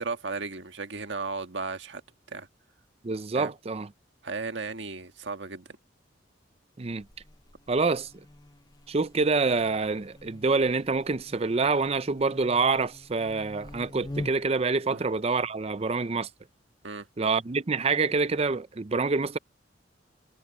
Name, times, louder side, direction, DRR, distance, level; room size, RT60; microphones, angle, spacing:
voice 1, 0.0-2.0 2.3-2.5 3.4-3.5 4.2-5.7 14.9-15.0 16.8-17.1, right 4 dB, 70° right, 1.6 m, -35 dB
voice 2, 3.0-3.9 6.8-7.1 7.7-8.1 8.9-16.3 17.2-19.4, right 4 dB, 35° right, 0.5 m, -26 dB
Buzz, 6.8-14.6, left 1 dB, 20° left, 0.7 m, -45 dB
head